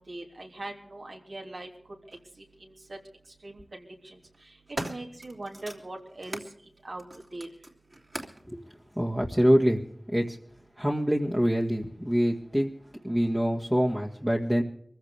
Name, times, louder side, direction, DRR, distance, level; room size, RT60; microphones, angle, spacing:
voice 1, 0.0-1.7 2.6-3.0 3.4-4.2 4.7-6.4 6.8-7.0 7.3-7.5, right 2 dB, 75° right, 0 dB, 3.2 m, -40 dB
sound 1, 2.1-2.2 3.3-3.7 4.2-6.5 7.0-8.5 9.3-9.4, right 1 dB, 45° right, 2.8 m, -40 dB
voice 2, 9.0-9.8 10.1-10.4 10.8-12.7 13.0-14.6, equal, 5° right, -2 dB, 1.9 m, -25 dB
24.0 x 15.5 x 3.4 m, 0.66 s
wide cardioid pair, 45°, 0 cm